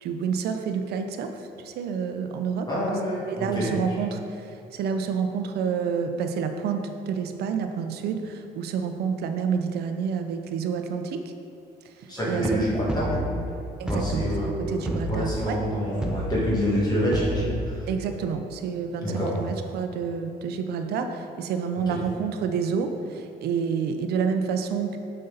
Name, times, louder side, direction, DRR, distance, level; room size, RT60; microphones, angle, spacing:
voice 1, 0.0-2.7 3.3-11.2 12.0-12.6 13.8-15.6 17.9-25.0, right 6 dB, 70° right, 6 dB, 0.6 m, -29 dB
voice 2, 2.7-3.8 12.1-13.4 13.9-17.9 19.0-19.4 21.9-22.0, equal, 25° left, -6 dB, 1.6 m, -27 dB
sound 1, 12.2-13.5 13.9-14.3 14.9-15.5 16.0-16.5 16.8-16.9 17.1-17.5, equal, 5° right, 0.7 m, -30 dB
6.6 x 5.5 x 3.9 m, 2.6 s
cardioid pair, 110°, 17 cm